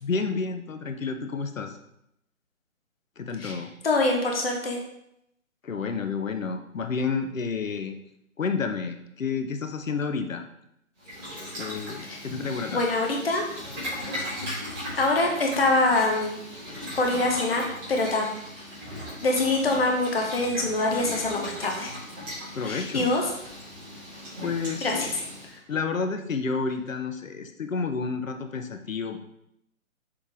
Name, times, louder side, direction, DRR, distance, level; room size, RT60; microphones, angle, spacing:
voice 1, 0.0-1.8 3.2-3.7 5.6-8.0 8.4-10.4 11.5-12.8 22.5-23.1 24.4-25.1 25.7-29.2, left 5 dB, 70° left, 7 dB, 0.9 m, -30 dB
voice 2, 3.8-4.8 12.1-12.2 12.7-13.4 14.2-14.4 15.0-16.4 17.0-17.6 17.9-18.3 19.2-21.9 22.6-23.2 24.8-25.1, left 2 dB, 45° left, 1 dB, 1.1 m, -24 dB
Boiling, 11.0-25.5, left 1 dB, 15° right, 2.4 m, -37 dB
6.8 x 4.4 x 3.5 m, 0.78 s
figure-of-eight pair, 150°, 41 cm